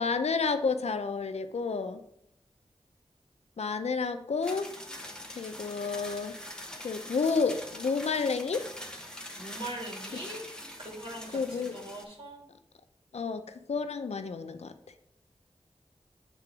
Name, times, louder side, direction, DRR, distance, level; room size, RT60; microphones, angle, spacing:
voice 1, 0.0-2.0 3.6-4.7 5.4-6.4 6.8-8.6 11.3-11.8 13.1-14.7, left 4 dB, 80° left, 9 dB, 0.5 m, -30 dB
sound 1, 4.4-12.0, left 1 dB, 5° left, 1.1 m, -43 dB
voice 2, 9.4-10.5 10.8-12.4, right 1 dB, 55° right, -3 dB, 2.6 m, -41 dB
7.7 x 3.8 x 4.9 m, 0.73 s
wide cardioid pair, 70°, 11 cm